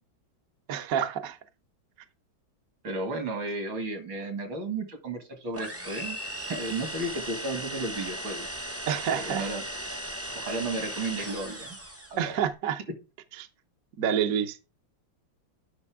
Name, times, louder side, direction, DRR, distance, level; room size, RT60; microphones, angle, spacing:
voice 1, 0.7-1.4 8.9-9.5 12.2-12.8 13.4-13.5 14.0-14.6, right 8 dB, 55° right, 1.0 m, -28 dB
voice 2, 2.8-6.2 6.5-8.5 9.1-9.6 10.3-11.8 12.1-12.4, right 2 dB, 75° right, 2.8 m, -33 dB
sound 1, 5.5-12.2, right 1 dB, 15° right, 0.4 m, -37 dB
9.6 x 5.7 x 3.5 m
omnidirectional pair, 2.2 m